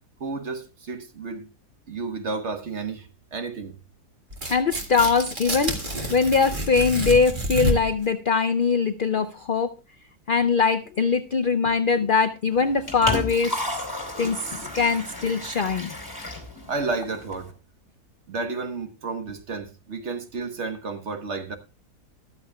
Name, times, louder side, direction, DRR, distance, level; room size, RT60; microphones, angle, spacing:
voice 1, 0.2-1.5 1.9-3.8 16.7-17.5 18.3-21.6, right 3 dB, 50° right, 1.3 m, -31 dB
Tearing, 4.3-8.0, right 1 dB, 30° right, 1.9 m, -28 dB
voice 2, 4.5-5.8 6.1-9.7 10.3-13.7 14.2-15.9, left 5 dB, 80° left, 0.4 m, -22 dB
Liquid, 12.5-17.5, left 1 dB, 15° left, 2.7 m, -33 dB
14.0 x 12.5 x 2.3 m
omnidirectional pair, 1.7 m